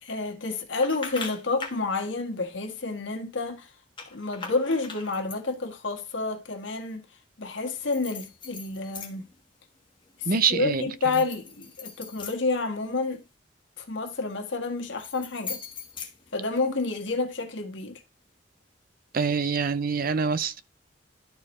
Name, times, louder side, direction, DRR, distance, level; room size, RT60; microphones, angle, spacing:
voice 1, 0.0-3.7 4.1-7.0 7.4-9.3 10.2-13.2 13.8-15.6 16.3-18.0, left 3 dB, 75° left, 1.5 m, -29 dB
sound 1, 0.8-1.8 4.0-5.5 7.8-9.4 9.7-10.2 10.9-13.2 14.8-16.9, left 5 dB, 25° left, 1.4 m, -41 dB
voice 2, 10.3-10.8 19.1-20.6, right 5 dB, 50° right, 0.5 m, -25 dB
12.0 x 4.6 x 3.1 m
head